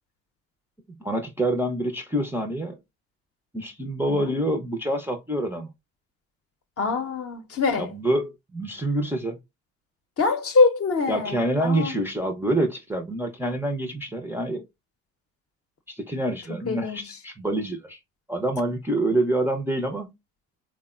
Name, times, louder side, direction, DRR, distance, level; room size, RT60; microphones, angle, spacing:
voice 1, 1.0-2.8 3.5-5.7 7.8-9.4 11.1-14.7 15.9-18.0 18.3-20.1, right 1 dB, 5° right, 0.5 m, -26 dB
voice 2, 4.0-4.3 6.8-7.9 10.2-11.9 16.5-17.0, left 4 dB, 40° left, 0.7 m, -24 dB
3.5 x 2.1 x 2.3 m
hypercardioid pair, 55°, 36 cm